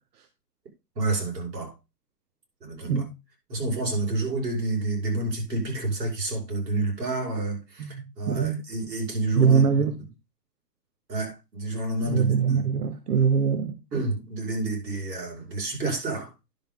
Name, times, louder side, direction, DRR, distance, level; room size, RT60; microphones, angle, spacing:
voice 1, 1.0-1.7 2.6-3.0 3.5-9.6 11.1-12.4 13.9-16.3, right 2 dB, 85° right, 5.7 m, -29 dB
voice 2, 7.8-8.6 9.4-10.0 12.0-13.8, right 6 dB, 65° right, 1.1 m, -23 dB
10.5 x 7.2 x 3.7 m
hypercardioid pair, 155°, 49 cm